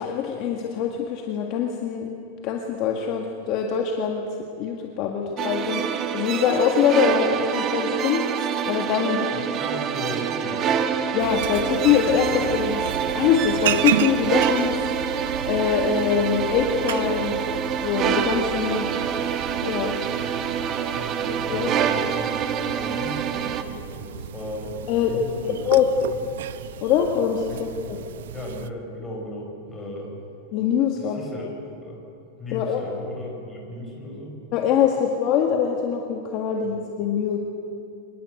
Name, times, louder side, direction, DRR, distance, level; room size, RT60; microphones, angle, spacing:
voice 1, 0.0-2.1 2.4-4.2 4.6-8.2 8.6-9.2 11.1-12.9 13.1-14.8 15.1-17.3 17.8-18.9 19.5-19.9 21.3-21.7 24.9-25.2 25.6-25.9 26.8-27.7 30.5-31.2 32.5-32.8 34.5-37.4, left 8 dB, 35° left, 1 dB, 1.8 m, -23 dB
sound 1, 5.4-23.6, right 8 dB, 25° right, 1.2 m, -26 dB
voice 2, 9.3-10.8 20.9-25.7 26.1-26.2 27.5-28.0 28.3-30.1 31.0-32.0 32.4-34.4 36.6-36.7, left 1 dB, 10° left, -1 dB, 4.8 m, -36 dB
sound 2, 11.2-28.7, right 10 dB, 75° right, 0.9 m, -33 dB
25.0 x 20.5 x 8.0 m, 2.7 s
supercardioid pair, 170°, 0 cm